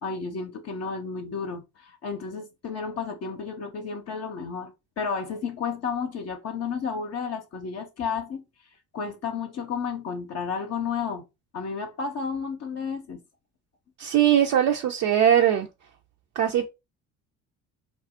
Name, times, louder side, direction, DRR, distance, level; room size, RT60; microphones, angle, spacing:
voice 1, 0.0-8.4 8.9-11.2 11.5-13.2, left 5 dB, 50° left, 0.6 m, -32 dB
voice 2, 14.0-15.7 16.4-16.7, right 10 dB, 55° right, 0.5 m, -20 dB
2.4 x 2.0 x 3.5 m
hypercardioid pair, 65°, 33 cm